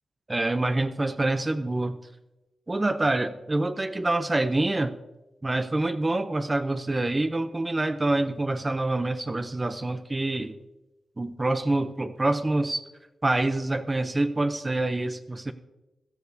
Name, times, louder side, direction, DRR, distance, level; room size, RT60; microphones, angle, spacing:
voice 1, 0.3-2.0 2.7-4.9 5.4-10.5 11.2-12.8 13.2-15.5, right 2 dB, 25° right, 10 dB, 0.5 m, -26 dB
16.0 x 12.0 x 2.7 m, 1.0 s
cardioid pair, 70°, 0 cm